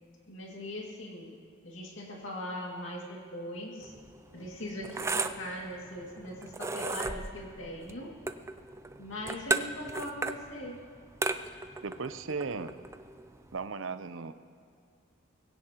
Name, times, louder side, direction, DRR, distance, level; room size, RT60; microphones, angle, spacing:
voice 1, 0.3-1.3 1.6-3.9 4.3-8.1 9.0-10.8, left 1 dB, 65° left, -1 dB, 2.4 m, -40 dB
sound 1, 3.8-13.6, right 3 dB, 15° right, 0.4 m, -36 dB
voice 2, 11.8-12.7 13.5-14.3, right 4 dB, 70° right, 11 dB, 0.7 m, -36 dB
21.5 x 16.5 x 3.0 m, 2.4 s
head